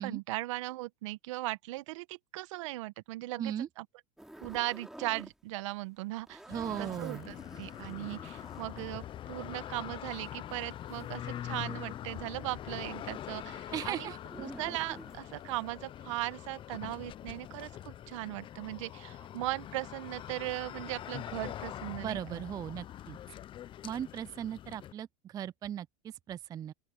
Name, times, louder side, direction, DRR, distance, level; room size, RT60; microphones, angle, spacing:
voice 1, 0.0-3.8 4.4-6.4 6.8-22.4, right 19 dB, 70° right, 1.5 m, -38 dB
voice 2, 3.4-3.7 6.5-7.3 13.7-14.2 22.0-23.2 23.8-26.7, right 10 dB, 20° right, 0.3 m, -38 dB
sound 1, 4.2-5.3 5.6-11.8 12.1-15.7, right 1 dB, 5° right, 4.6 m, -50 dB
sound 2, 6.5-24.9, left 11 dB, 30° left, 0.7 m, -44 dB
open air
supercardioid pair, 115°, 16 cm